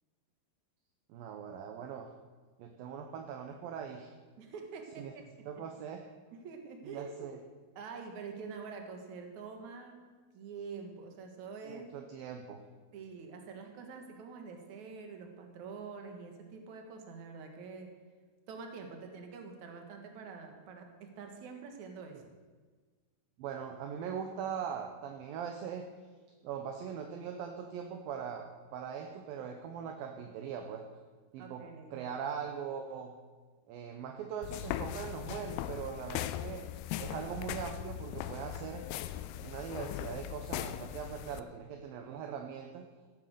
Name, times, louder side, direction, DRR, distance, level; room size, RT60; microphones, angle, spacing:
voice 1, 1.1-2.1 2.6-4.1 5.0-5.1 5.5-6.0 6.8-7.4 11.6-12.6 23.4-25.9 26.4-30.9 31.3-31.7 31.9-33.2 33.7-36.7 37.0-38.9 39.4-42.9, right 7 dB, 70° right, 5 dB, 2.5 m, -41 dB
voice 2, 4.4-5.2 5.6-5.7 6.3-7.3 7.8-10.0 10.3-11.9 12.9-17.9 18.5-22.2 31.4-32.0, right 5 dB, 55° right, 4 dB, 2.7 m, -46 dB
sound 1, 34.4-41.4, left 12 dB, 85° left, 2.6 m, -39 dB
16.0 x 9.8 x 6.6 m, 1.4 s
omnidirectional pair, 4.7 m